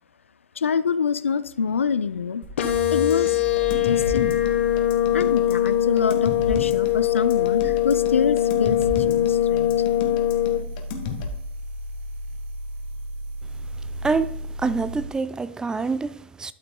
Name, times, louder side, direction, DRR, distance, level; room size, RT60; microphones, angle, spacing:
voice 1, 0.6-2.4 2.9-3.4 3.7-4.5 5.1-9.7, left 6 dB, 90° left, 0.4 m, -26 dB
sound 1, 2.4-15.1, equal, 60° right, 2.1 m, -35 dB
sound 2, 2.6-10.6, left 13 dB, 70° left, 1.1 m, -22 dB
sound 3, 3.1-11.3, left 5 dB, 55° left, 1.4 m, -33 dB
voice 2, 14.0-16.5, right 4 dB, 10° right, 0.3 m, -26 dB
12.0 x 5.9 x 2.2 m
hypercardioid pair, 110°, 7 cm